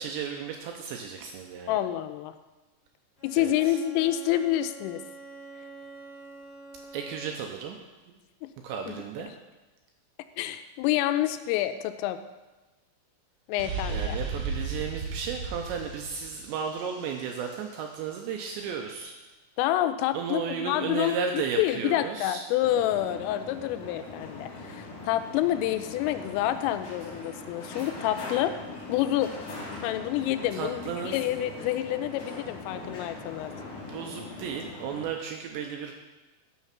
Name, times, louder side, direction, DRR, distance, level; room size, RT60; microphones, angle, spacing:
voice 1, 0.0-1.8 3.4-3.8 6.9-8.2 8.6-9.3 13.9-19.1 20.1-22.5 30.5-31.2 33.9-35.9, right 6 dB, 85° right, 3 dB, 2.6 m, -34 dB
voice 2, 1.7-2.3 3.2-5.0 8.4-8.5 8.9-9.0 10.4-12.2 13.5-14.2 19.6-21.2 21.6-28.5 28.9-29.5 29.8-33.5, left 13 dB, 85° left, 10 dB, 3.2 m, -28 dB
Bowed string instrument, 3.2-7.6, right 2 dB, 15° left, 4.2 m, -46 dB
sound 1, 13.6-17.3, right 4 dB, 55° right, 2.1 m, -34 dB
sound 2, 22.6-35.0, left 2 dB, 45° left, 3.2 m, -41 dB
13.0 x 6.6 x 5.8 m, 1.1 s
omnidirectional pair, 5.8 m